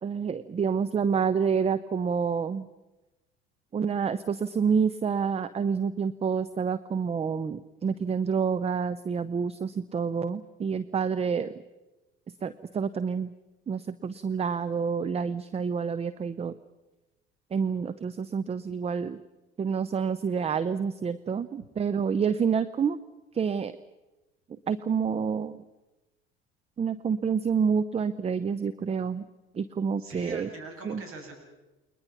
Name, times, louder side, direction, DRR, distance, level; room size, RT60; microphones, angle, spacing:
voice 1, 0.0-2.7 3.7-11.5 12.4-13.3 13.7-16.6 17.5-19.2 19.6-23.0 23.3-23.7 24.7-25.6 26.8-29.2 29.5-30.5 30.8-31.0, right 6 dB, 20° right, 14 dB, 0.7 m, -28 dB
voice 2, 30.0-31.3, right 3 dB, 40° right, 3 dB, 7.0 m, -42 dB
29.5 x 21.0 x 5.8 m, 1.1 s
figure-of-eight pair, 65°, 32 cm